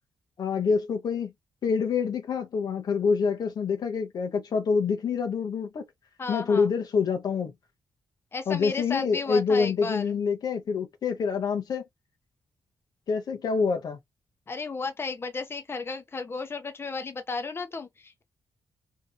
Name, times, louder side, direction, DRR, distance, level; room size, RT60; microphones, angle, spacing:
voice 1, 0.4-1.3 1.6-5.8 6.3-7.5 8.5-11.8 13.1-14.0, left 5 dB, 65° left, 0.8 m, -26 dB
voice 2, 6.2-6.7 8.3-10.2 14.5-18.2, left 4 dB, 35° left, 0.7 m, -34 dB
2.8 x 2.6 x 2.2 m
cardioid pair, 65°, 7 cm